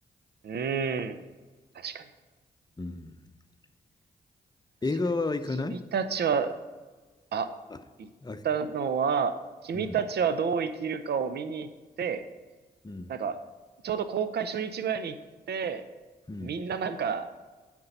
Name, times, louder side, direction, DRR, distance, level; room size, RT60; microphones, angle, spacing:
voice 1, 0.4-1.2 1.7-2.1 5.7-6.6 7.3-7.5 8.0-8.1 8.4-9.3 9.6-11.7 12.0-12.2 13.1-13.4 13.8-15.2 15.5-15.8 16.4-17.3, right 6 dB, 60° right, 11 dB, 0.7 m, -29 dB
voice 2, 2.8-3.2 4.8-5.8 7.7-7.8 8.2-8.4 9.7-10.0 12.8-13.1 16.3-16.6, left 3 dB, 20° left, 9 dB, 0.7 m, -32 dB
9.5 x 4.6 x 6.8 m, 1.3 s
supercardioid pair, 40°, 19 cm